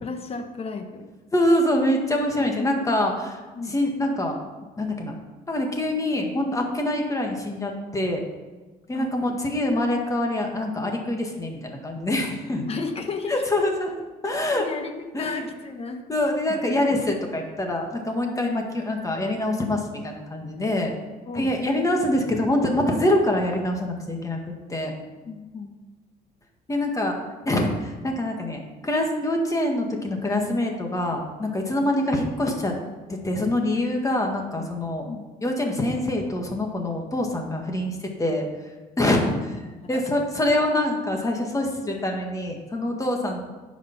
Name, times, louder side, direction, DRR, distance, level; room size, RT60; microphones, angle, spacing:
voice 1, 0.0-1.1 2.4-3.0 3.5-3.8 8.9-9.4 12.7-13.4 14.6-16.0 16.9-17.0 18.5-18.7 21.3-21.5 25.2-25.7 35.1-35.2 39.2-39.5 39.8-40.0, left 4 dB, 35° left, 5 dB, 1.3 m, -33 dB
voice 2, 1.3-3.4 3.7-4.3 4.8-5.2 5.5-8.2 8.9-12.7 13.3-14.0 14.2-14.6 15.1-15.4 16.1-20.9 21.3-25.0 26.7-27.2 27.4-32.7 33.1-35.1 35.4-38.4 39.0-39.3 39.9-43.4, left 1 dB, 20° left, 2 dB, 1.7 m, -25 dB
13.5 x 5.1 x 5.9 m, 1.2 s
cardioid pair, 110°, 17 cm